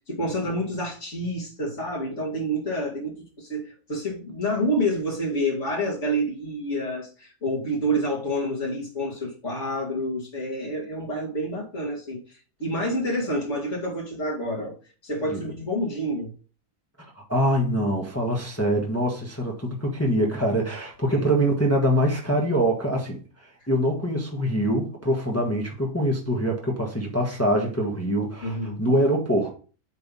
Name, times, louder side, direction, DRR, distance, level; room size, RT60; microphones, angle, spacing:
voice 1, 0.1-12.2 12.6-14.8 15.0-16.3 21.1-21.3 28.4-28.9, equal, 55° left, 2.6 m, -28 dB
voice 2, 17.1-23.2 23.7-29.5, equal, 10° left, 1.3 m, -24 dB
8.6 x 3.4 x 5.4 m
omnidirectional pair, 1.5 m